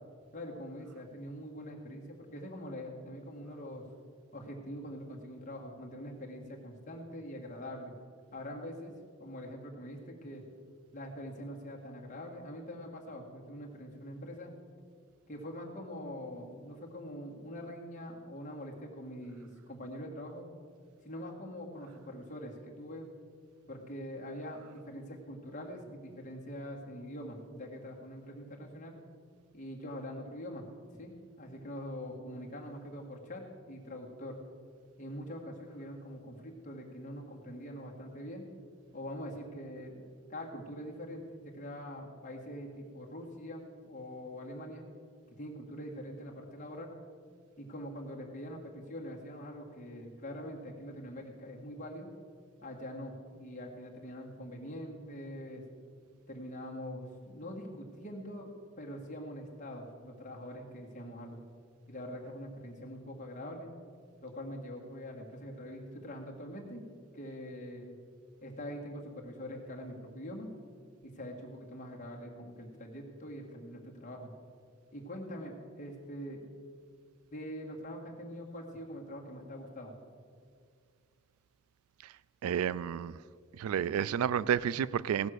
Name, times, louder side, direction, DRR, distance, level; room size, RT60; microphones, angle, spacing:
voice 1, 0.3-3.8 4.3-7.9 8.3-8.9 9.2-10.4 10.9-14.5 15.3-20.5 21.0-23.1 23.7-29.0 29.5-30.7 31.0-34.4 35.0-38.4 38.9-44.8 45.4-46.9 47.6-52.1 52.6-55.6 56.3-61.4 61.9-63.7 64.2-66.8 67.1-68.0 68.4-70.5 71.0-74.3 74.9-76.4 77.3-79.9, equal, 35° left, 1.7 m, -44 dB
voice 2, 82.4-83.2 83.5-85.3, right 8 dB, 85° right, 0.3 m, -31 dB
17.0 x 6.4 x 6.4 m
head